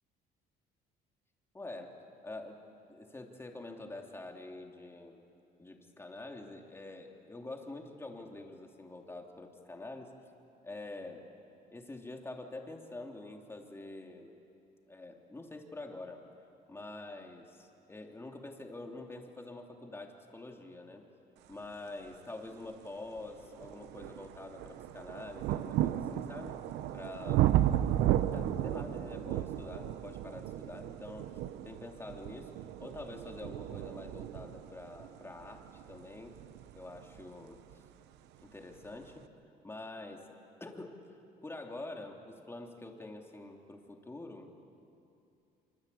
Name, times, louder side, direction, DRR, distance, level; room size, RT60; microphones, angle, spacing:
voice 1, 1.5-2.0 2.2-2.6 2.9-5.2 5.6-10.1 10.6-11.3 11.7-14.3 14.9-16.2 16.7-21.0 21.5-26.6 26.9-27.5 28.3-36.4 36.8-37.6 38.4-39.3 39.6-40.3 40.6-44.5, left 2 dB, 15° left, 2 dB, 3.2 m, -46 dB
sound 1, 22.5-22.6 23.2-37.9 38.8-38.9, right 13 dB, 85° right, 0.9 m, -34 dB
26.0 x 26.0 x 8.6 m, 2.7 s
cardioid pair, 110°, 17 cm